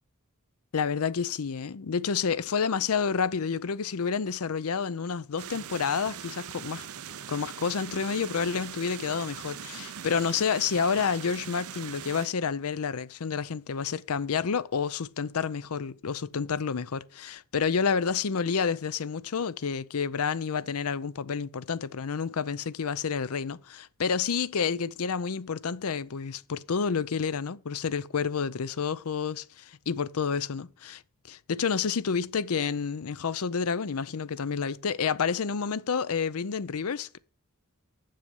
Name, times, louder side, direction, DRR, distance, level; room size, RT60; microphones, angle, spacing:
voice 1, 0.7-6.9 7.3-31.0 31.3-37.2, left 6 dB, 70° left, 0.6 m, -29 dB
sound 1, 5.4-12.3, right 9 dB, 70° right, 0.7 m, -41 dB
7.6 x 6.8 x 6.9 m
head